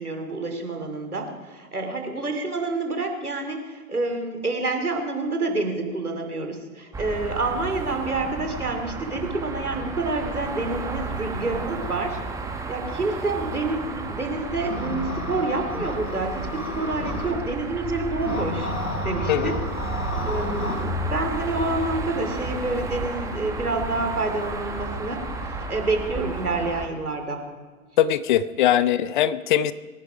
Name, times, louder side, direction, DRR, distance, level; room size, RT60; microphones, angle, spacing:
voice 1, 0.0-12.2 12.7-18.7 19.0-19.6 20.2-27.4, right 3 dB, 90° right, 4 dB, 2.8 m, -28 dB
sound 1, 6.9-26.9, right 2 dB, 5° right, 1.3 m, -32 dB
sound 2, 14.6-17.3 18.2-20.8, left 2 dB, 80° left, 4.5 m, -32 dB
voice 2, 28.0-29.7, left 11 dB, 35° left, 16 dB, 0.6 m, -21 dB
23.5 x 10.5 x 5.1 m, 1.4 s
figure-of-eight pair, 110°, 43 cm